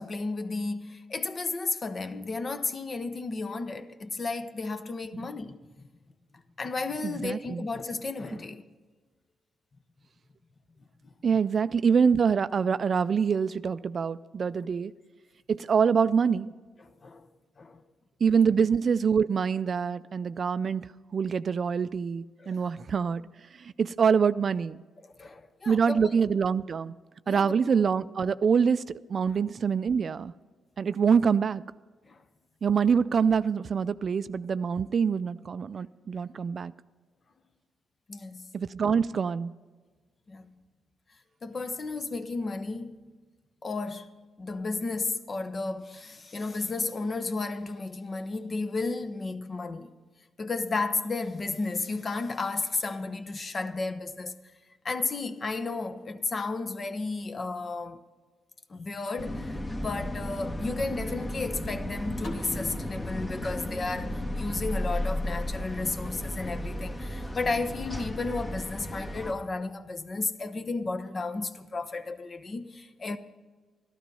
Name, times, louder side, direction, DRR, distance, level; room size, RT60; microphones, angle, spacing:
voice 1, 0.0-5.6 6.6-8.6 11.3-11.4 17.0-17.3 17.6-17.8 22.4-22.5 25.0-26.1 27.3-27.6 32.1-32.2 38.1-38.5 40.3-40.5 41.4-43.0 43.6-44.1 44.4-49.9 50.4-54.4 54.8-58.0 58.7-73.2, left 3 dB, 45° left, 1.0 m, -33 dB
voice 2, 7.0-7.7 11.2-14.9 15.5-16.5 18.2-23.2 23.5-24.8 25.7-26.9 27.3-30.3 30.8-31.6 32.6-36.7 38.5-39.5, right 6 dB, 55° right, 0.4 m, -25 dB
sound 1, 59.2-69.3, left 1 dB, 30° left, 1.6 m, -34 dB
sound 2, 62.2-65.0, left 2 dB, 60° left, 2.3 m, -45 dB
13.0 x 12.0 x 5.5 m
supercardioid pair, 55°, 0 cm